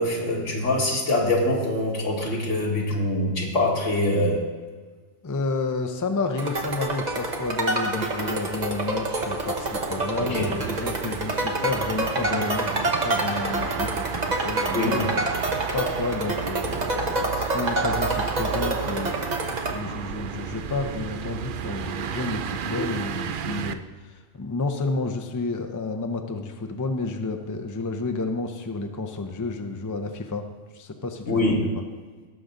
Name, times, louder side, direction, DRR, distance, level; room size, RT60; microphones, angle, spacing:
voice 1, 0.0-4.4 10.2-10.6 14.7-14.9 22.7-22.9 31.3-31.6, left 1 dB, 80° left, -2 dB, 2.3 m, -24 dB
voice 2, 5.2-15.2 15.7-30.4 30.7-31.5, left 3 dB, 20° left, 5 dB, 0.6 m, -31 dB
sound 1, 6.4-19.7, right 2 dB, 35° right, 1.1 m, -27 dB
sound 2, 6.6-23.7, right 8 dB, 55° right, 0.6 m, -34 dB
17.0 x 6.7 x 3.9 m, 1.5 s
omnidirectional pair, 1.3 m